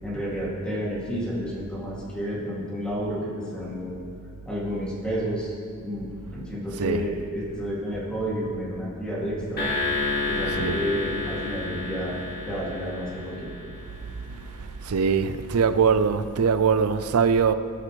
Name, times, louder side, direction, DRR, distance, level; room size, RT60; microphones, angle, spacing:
voice 1, 0.0-3.9 4.5-5.5 5.8-9.7 10.2-12.1 12.5-13.5, equal, 5° left, 2.4 m, -30 dB
sound 1, 9.6-14.0, left 3 dB, 45° left, 2.7 m, -30 dB
voice 2, 14.8-17.5, right 6 dB, 75° right, 0.5 m, -22 dB
18.5 x 6.5 x 3.2 m
head